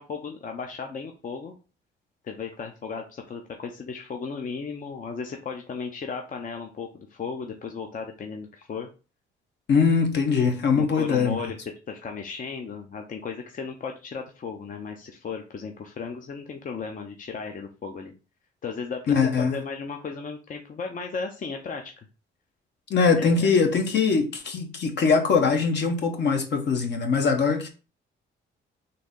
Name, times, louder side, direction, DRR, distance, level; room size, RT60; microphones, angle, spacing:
voice 1, 0.0-1.6 2.2-8.9 10.7-11.6 11.9-18.1 18.6-22.1 23.2-23.5, left 5 dB, 40° left, 0.6 m, -35 dB
voice 2, 9.7-11.4 19.1-19.5 22.9-27.7, left 5 dB, 60° left, 1.0 m, -22 dB
3.8 x 2.8 x 3.7 m
cardioid pair, 90°, 20 cm